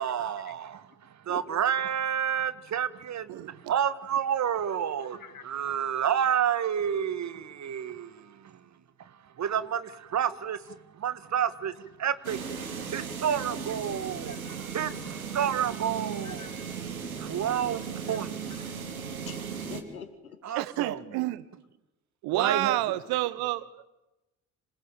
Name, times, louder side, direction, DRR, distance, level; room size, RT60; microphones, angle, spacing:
voice 1, 0.0-16.5 17.2-18.4 20.4-21.2 22.3-22.8, right 9 dB, 40° right, 1.7 m, -30 dB
voice 2, 1.3-1.6 5.1-5.4 14.2-14.6 16.2-16.7 18.1-18.2 18.7-18.8 19.3-20.4 22.8-23.0, left 7 dB, 85° left, 1.9 m, -45 dB
sound 1, 12.2-19.8, right 6 dB, 85° right, 2.0 m, -37 dB
voice 3, 20.5-21.4 22.2-23.8, right 16 dB, 60° right, 1.4 m, -29 dB
26.5 x 19.5 x 9.1 m
figure-of-eight pair, 50°, 41 cm